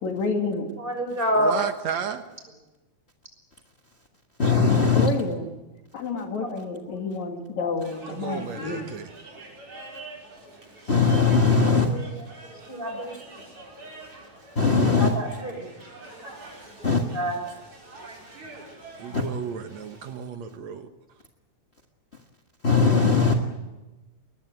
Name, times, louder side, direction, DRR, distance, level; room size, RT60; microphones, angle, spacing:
voice 1, 0.0-0.7 5.0-5.5 5.9-8.9, left 4 dB, 70° left, 4 dB, 3.5 m, -29 dB
voice 2, 0.8-1.5 6.0-6.5 6.8-6.9 7.2-7.3 11.8-12.1 12.5-13.4 14.8-15.7 16.8-17.4 19.0-19.2, equal, 15° right, 3 dB, 6.4 m, -29 dB
voice 3, 1.3-2.2 8.1-9.1 19.0-20.9, right 7 dB, 65° right, 7 dB, 2.3 m, -33 dB
voice 4, 4.4-5.1 10.9-11.9 14.5-15.1 16.8-17.0 19.1-19.2 22.6-23.3, left 4 dB, 35° left, 3 dB, 1.1 m, -19 dB
sound 1, 7.8-20.1, right 2 dB, 50° right, 6.6 m, -45 dB
22.0 x 20.5 x 9.4 m, 1.1 s
omnidirectional pair, 3.4 m